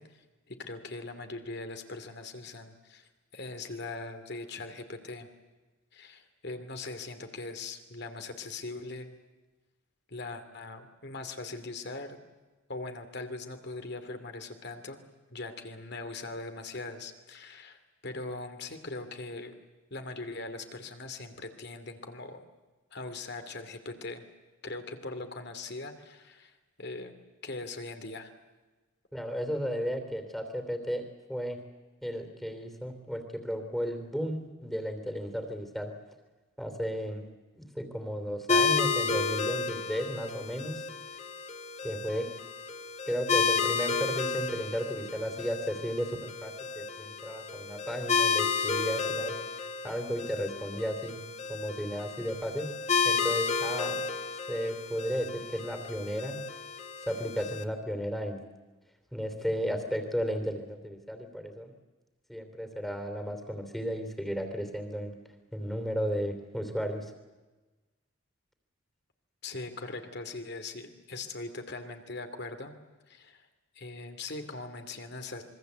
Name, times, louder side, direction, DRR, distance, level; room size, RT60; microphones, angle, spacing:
voice 1, 0.0-5.3 5.9-9.1 10.1-12.2 12.7-15.0 15.3-19.5 19.9-22.5 22.9-24.2 24.6-27.1 27.4-28.3 69.4-72.7 73.1-73.5 73.7-75.4, left 3 dB, 55° left, 7 dB, 2.7 m, -41 dB
voice 2, 29.1-31.0 31.3-31.6 32.0-35.9 36.6-37.2 37.6-40.8 41.8-42.3 43.1-49.3 49.8-51.2 51.5-52.7 53.0-54.0 54.5-56.4 57.1-58.4 59.1-61.7 62.3-65.2 65.5-67.1, equal, ahead, 6 dB, 3.1 m, -34 dB
sound 1, 38.5-57.6, left 5 dB, 35° left, 1.8 m, -32 dB
26.5 x 23.0 x 8.1 m, 1.2 s
head